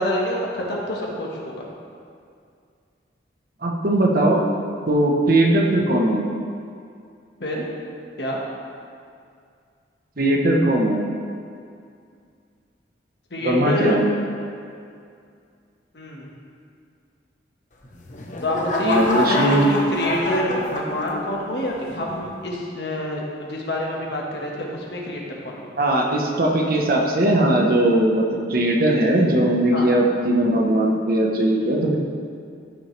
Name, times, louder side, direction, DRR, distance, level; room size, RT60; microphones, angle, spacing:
voice 1, 0.0-1.7 7.4-7.7 8.2-8.4 13.3-14.0 15.9-16.3 18.4-25.7 29.7-29.9, left 1 dB, 65° left, -2 dB, 1.5 m, -27 dB
voice 2, 3.6-4.4 4.9-6.2 10.2-11.0 13.4-14.1 18.8-19.7 25.8-28.2 28.5-32.0, right 1 dB, 55° right, 0 dB, 1.0 m, -19 dB
sound 1, 17.8-21.4 22.0-22.3, left 2 dB, 45° left, 1.0 m, -26 dB
14.0 x 6.1 x 3.3 m, 2.3 s
head